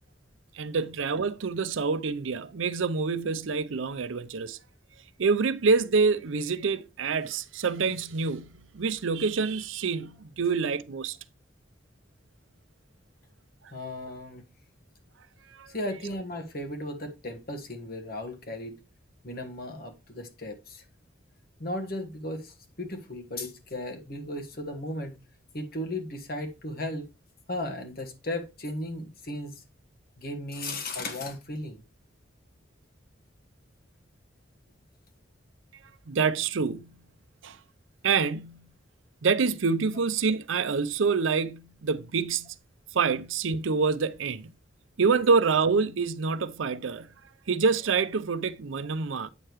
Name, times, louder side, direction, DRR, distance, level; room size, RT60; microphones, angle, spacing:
voice 1, 0.6-4.6 5.2-11.2 15.6-15.7 36.1-37.0 37.4-37.6 38.0-38.7 39.2-42.5 42.9-44.5 45.0-47.1 47.5-49.3, right 5 dB, 85° right, 0.6 m, -26 dB
voice 2, 13.7-14.5 15.7-18.8 19.2-20.8 21.6-25.2 25.5-27.1 27.5-29.6 30.2-31.8, left 1 dB, 50° left, 1.4 m, -36 dB
8.8 x 6.6 x 3.0 m
head